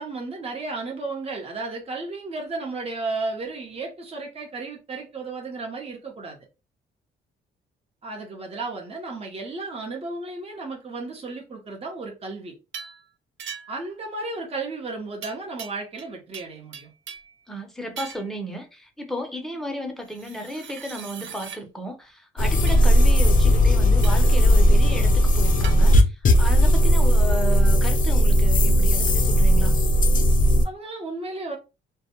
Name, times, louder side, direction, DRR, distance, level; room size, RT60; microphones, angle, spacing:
voice 1, 0.0-6.4 8.0-12.5 13.7-16.9 30.6-31.6, right 3 dB, 30° right, 0.8 m, -33 dB
sound 1, 12.7-13.0 13.4-13.9 15.2-16.1 16.3-17.4 18.0-18.3 20.1-21.6 22.7-22.9 24.0-24.3 25.6-25.8, right 7 dB, 70° right, 0.5 m, -39 dB
voice 2, 17.5-29.7, equal, ahead, 0.7 m, -34 dB
sound 2, 22.4-30.6, equal, 45° left, 0.5 m, -17 dB
2.2 x 2.1 x 2.9 m
cardioid pair, 90°, 20 cm